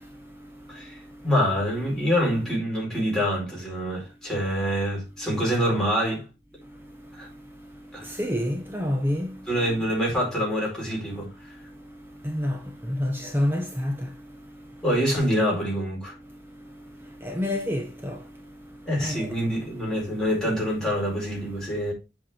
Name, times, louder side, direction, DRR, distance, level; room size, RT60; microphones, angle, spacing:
voice 1, 0.7-6.3 7.1-7.3 7.9-8.1 9.5-11.5 14.8-16.1 18.9-21.9, equal, 5° left, 4.5 m, -26 dB
voice 2, 8.2-9.3 12.2-12.6 12.9-13.9 17.2-18.2 19.0-19.2, left 1 dB, 10° right, 1.0 m, -27 dB
7.8 x 4.8 x 4.3 m
head